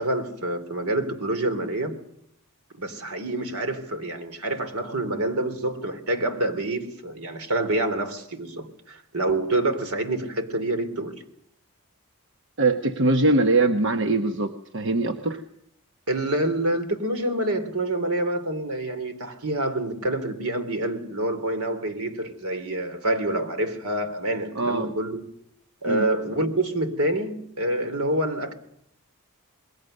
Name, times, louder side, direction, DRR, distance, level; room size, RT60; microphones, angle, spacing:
voice 1, 0.0-2.0 2.7-11.2 16.1-25.2 25.8-28.5, right 1 dB, 85° right, 3.2 m, -27 dB
voice 2, 12.6-15.4 24.5-24.9 25.8-26.1, right 2 dB, 55° right, 1.1 m, -22 dB
27.5 x 21.5 x 6.6 m
head